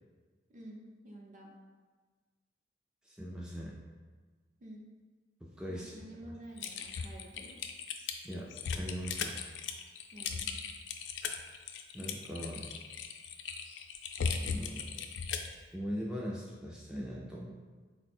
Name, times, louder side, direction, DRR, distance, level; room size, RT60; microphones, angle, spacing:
voice 1, 0.5-1.5 4.6-4.9 5.7-7.6 10.1-10.5, right 1 dB, 45° right, -1 dB, 0.6 m, -50 dB
voice 2, 3.0-3.8 5.4-6.0 8.2-8.5 8.7-9.4 11.9-12.7 14.4-15.0 15.7-17.5, equal, 5° right, -5 dB, 0.3 m, -40 dB
Typing, 6.6-15.5, left 6 dB, 75° left, 0.3 m, -37 dB
3.8 x 2.1 x 4.2 m, 1.4 s
head